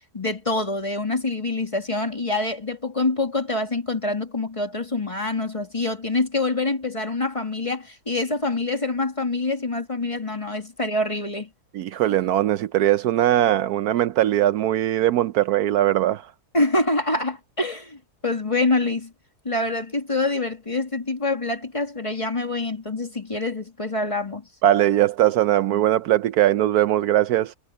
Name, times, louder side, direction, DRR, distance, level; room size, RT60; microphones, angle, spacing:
voice 1, 0.1-11.5 16.5-19.1 19.4-24.4, left 2 dB, 20° left, 2.0 m, -25 dB
voice 2, 11.7-16.2 24.6-27.5, right 13 dB, 75° right, 1.0 m, -20 dB
omnidirectional pair, 1.7 m